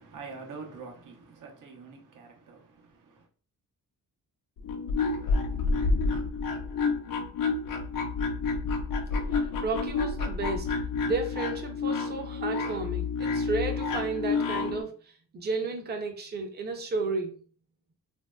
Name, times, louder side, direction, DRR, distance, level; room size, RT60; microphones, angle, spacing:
voice 1, 0.0-3.3, right 4 dB, 70° right, 0.8 m, -45 dB
sound 1, 4.6-14.8, left 4 dB, 75° left, 0.6 m, -29 dB
voice 2, 9.3-10.7 11.0-17.4, right 3 dB, 30° right, 0.6 m, -33 dB
3.1 x 2.6 x 2.2 m
cardioid pair, 105°, 33 cm